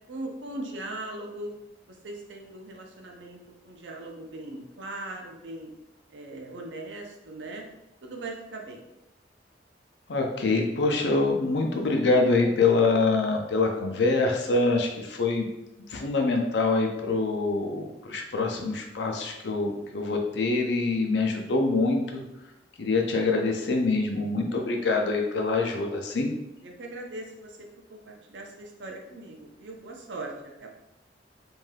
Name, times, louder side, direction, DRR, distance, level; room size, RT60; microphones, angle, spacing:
voice 1, 0.1-1.5 1.9-3.4 3.6-5.7 6.1-7.6 8.0-8.8 26.6-30.7, right 2 dB, 90° right, 1 dB, 0.6 m, -39 dB
voice 2, 10.1-15.5 15.9-22.2 22.8-26.3, left 3 dB, 80° left, 2 dB, 0.5 m, -25 dB
2.6 x 2.2 x 3.2 m, 0.93 s
head